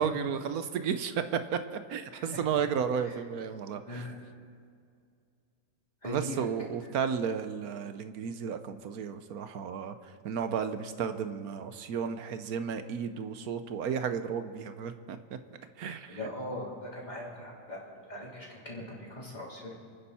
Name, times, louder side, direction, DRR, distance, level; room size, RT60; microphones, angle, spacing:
voice 1, 0.0-4.1 6.0-10.0 10.2-15.4 15.8-16.3, right 7 dB, 70° right, 10 dB, 1.2 m, -33 dB
voice 2, 3.9-4.2 6.0-6.4 16.1-19.7, left 1 dB, 25° left, -5 dB, 3.6 m, -40 dB
28.5 x 9.9 x 4.2 m, 2.2 s
omnidirectional pair, 1.7 m